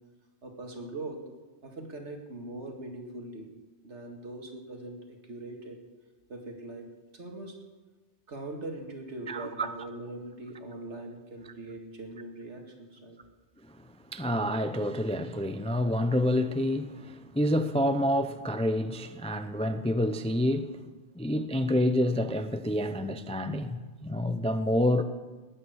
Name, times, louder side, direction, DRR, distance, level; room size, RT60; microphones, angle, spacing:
voice 1, 0.4-1.2 1.6-3.5 3.8-5.0 5.3-5.8 6.3-6.9 7.1-7.6 8.3-13.2, right 2 dB, 75° right, 2.3 m, -41 dB
voice 2, 9.3-9.7 13.7-20.8 21.2-25.0, left 1 dB, 10° left, 0.4 m, -28 dB
20.0 x 8.9 x 6.4 m
omnidirectional pair, 1.2 m